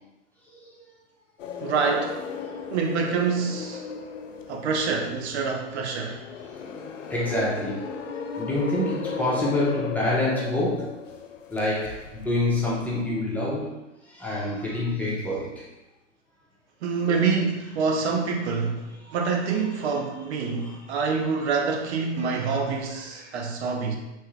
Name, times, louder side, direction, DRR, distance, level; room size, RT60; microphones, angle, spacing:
sound 1, 1.4-13.0, left 6 dB, 85° left, 0.5 m, -37 dB
voice 1, 1.6-2.2 2.7-3.9 4.5-6.2 16.8-18.9 19.1-24.0, right 5 dB, 60° right, 1 dB, 0.7 m, -26 dB
voice 2, 7.1-11.0 11.5-13.7 14.0-15.7 19.0-19.1 20.6-20.8 22.2-22.4 23.1-23.3, left 1 dB, 5° left, -7 dB, 0.5 m, -27 dB
3.0 x 2.2 x 3.1 m, 1.0 s
hypercardioid pair, 110°, 37 cm